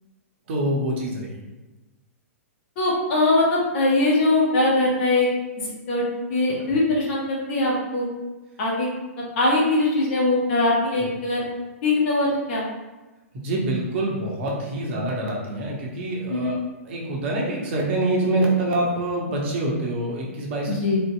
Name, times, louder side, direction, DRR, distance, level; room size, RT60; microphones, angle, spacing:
voice 1, 0.5-1.4 11.0-11.1 13.3-16.6 16.8-20.7, right 1 dB, 50° right, -2 dB, 0.9 m, -25 dB
voice 2, 2.8-5.3 5.6-6.0 6.3-8.1 8.6-8.9 9.4-11.4 11.8-12.6 16.3-16.5 20.7-21.0, left 2 dB, 45° left, -4 dB, 1.1 m, -21 dB
3.4 x 2.7 x 2.2 m, 1.1 s
figure-of-eight pair, 115°, 8 cm